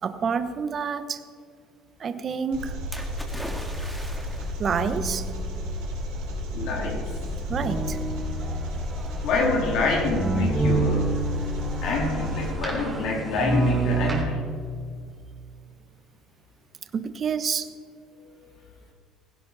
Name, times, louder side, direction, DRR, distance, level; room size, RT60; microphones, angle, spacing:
voice 1, 0.0-1.2 2.0-2.8 4.6-5.3 7.5-8.0 16.9-17.7, right 6 dB, 40° right, 10 dB, 1.1 m, -28 dB
Engine, 2.5-12.5, left 1 dB, 85° right, 5.0 m, -32 dB
Splash splatter, 2.9-4.7 5.6-5.7, equal, ahead, 1.8 m, -39 dB
sound 1, 4.7-5.7 7.5-14.2, right 3 dB, 15° right, 3.7 m, -28 dB
voice 2, 6.5-7.1 9.2-11.1 11.8-14.4, left 3 dB, 70° left, -1 dB, 3.6 m, -26 dB
17.0 x 16.5 x 4.1 m, 2.1 s
cardioid pair, 120°, 0 cm